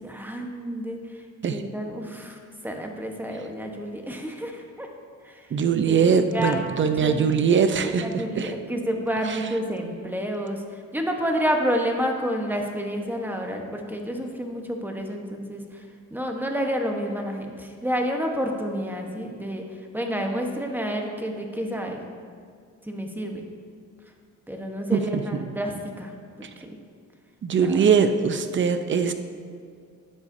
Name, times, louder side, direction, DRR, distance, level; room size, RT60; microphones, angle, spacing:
voice 1, 0.0-1.2 1.5-4.9 5.2-5.5 5.9-7.3 7.8-22.0 22.8-23.4 24.5-26.1 27.5-27.8, equal, 5° right, 2 dB, 1.1 m, -29 dB
voice 2, 5.5-8.5 9.3-9.4 24.9-25.4 26.4-26.5 27.4-29.1, right 6 dB, 40° right, 9 dB, 0.7 m, -22 dB
12.0 x 8.1 x 2.7 m, 2.2 s
cardioid pair, 90°, 30 cm